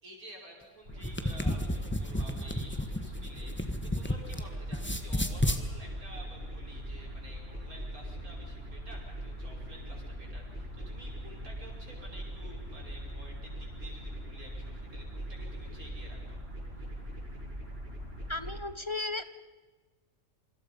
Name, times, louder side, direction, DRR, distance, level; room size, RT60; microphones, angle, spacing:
voice 1, 0.0-16.4 16.8-16.9, equal, 80° right, -1 dB, 5.9 m, -51 dB
sound 1, 0.9-4.4 4.7-5.6, left 1 dB, 10° left, 1.3 m, -31 dB
sound 2, 0.9-18.6, equal, 40° right, 7.2 m, -41 dB
voice 2, 18.3-19.2, left 2 dB, 25° left, 11 dB, 0.7 m, -34 dB
27.0 x 25.5 x 5.5 m, 1.3 s
omnidirectional pair, 1.5 m